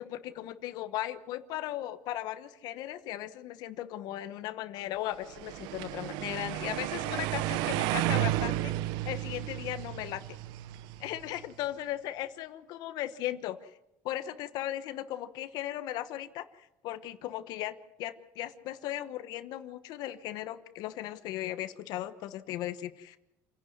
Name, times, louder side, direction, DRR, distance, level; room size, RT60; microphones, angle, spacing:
voice 1, 0.0-8.7 9.0-10.2 11.0-13.7 14.0-23.2, left 13 dB, 70° left, 11 dB, 1.1 m, -37 dB
sound 1, 5.3-11.4, right 14 dB, 85° right, 0.7 m, -33 dB
28.0 x 11.0 x 9.5 m, 0.89 s
cardioid pair, 140°, 7 cm